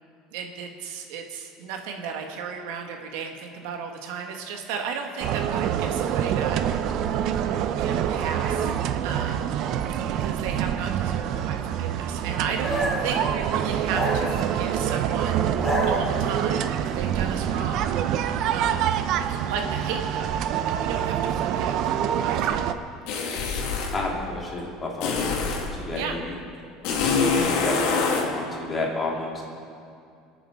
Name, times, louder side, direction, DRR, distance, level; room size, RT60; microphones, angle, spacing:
voice 1, 0.3-6.6 7.8-8.7 9.0-9.5 10.0-21.8 22.2-22.6 25.9-26.1, right 6 dB, 80° right, 3 dB, 1.6 m, -34 dB
sound 1, 5.2-22.7, right 9 dB, 50° right, 0.7 m, -26 dB
sound 2, 12.6-13.2 13.9-14.8 15.4-16.5, equal, ahead, 2.3 m, -29 dB
sound 3, 23.1-24.0 25.0-25.7 26.8-28.3, left 5 dB, 70° left, 2.4 m, -25 dB
voice 2, 23.9-26.4 26.9-29.5, left 2 dB, 20° left, -2 dB, 2.9 m, -31 dB
26.0 x 8.9 x 4.8 m, 2.4 s
cardioid pair, 145°, 0 cm